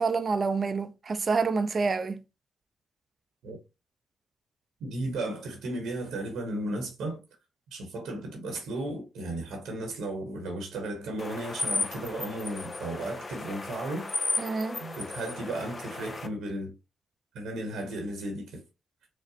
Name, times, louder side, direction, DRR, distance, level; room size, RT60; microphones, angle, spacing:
voice 1, 0.0-2.2 14.4-14.8, right 4 dB, 45° right, 0.5 m, -27 dB
voice 2, 4.8-7.2 7.7-14.1 14.8-16.7 17.3-18.6, right 1 dB, 75° right, 1.0 m, -35 dB
sound 1, 11.2-16.3, left 3 dB, 35° left, 0.6 m, -34 dB
4.8 x 2.1 x 2.7 m
hypercardioid pair, 45°, 0 cm